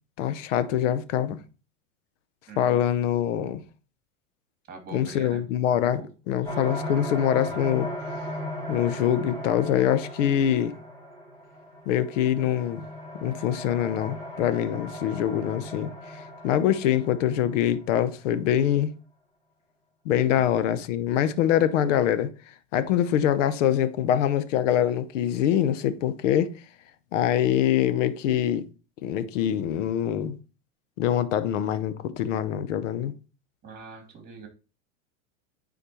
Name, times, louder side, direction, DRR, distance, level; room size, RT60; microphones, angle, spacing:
voice 1, 0.2-1.4 2.6-3.6 4.9-7.9 8.7-10.7 11.9-12.8 13.2-18.9 20.0-22.3 22.7-26.5 27.1-28.6 29.0-30.4 31.0-33.1, left 10 dB, 70° left, 0.9 m, -24 dB
voice 2, 2.5-2.8 4.7-5.4 5.7-6.1 6.4-6.6 20.3-20.4 33.6-34.5, right 5 dB, 25° right, 2.8 m, -44 dB
sound 1, 6.4-17.9, equal, 10° left, 3.7 m, -37 dB
9.8 x 4.3 x 3.0 m
supercardioid pair, 130°, 38 cm